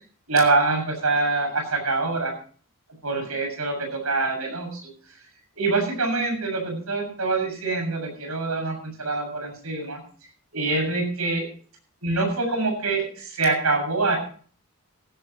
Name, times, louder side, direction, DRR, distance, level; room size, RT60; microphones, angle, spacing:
voice 1, 0.3-2.3 3.0-4.8 5.6-10.0 10.5-11.4 12.0-14.2, right 3 dB, 75° right, 3 dB, 7.1 m, -25 dB
16.0 x 15.5 x 3.1 m, 0.43 s
head